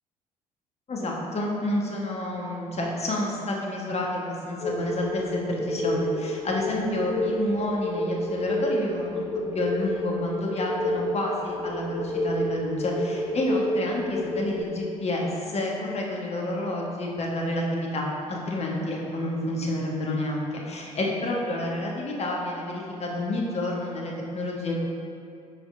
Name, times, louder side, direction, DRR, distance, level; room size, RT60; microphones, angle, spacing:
voice 1, 0.9-9.2 9.5-24.8, left 1 dB, 35° left, -2 dB, 1.2 m, -29 dB
sound 1, 4.6-14.6, equal, 70° left, 0.9 m, -29 dB
6.3 x 4.8 x 3.8 m, 2.5 s
figure-of-eight pair, 50°, 19 cm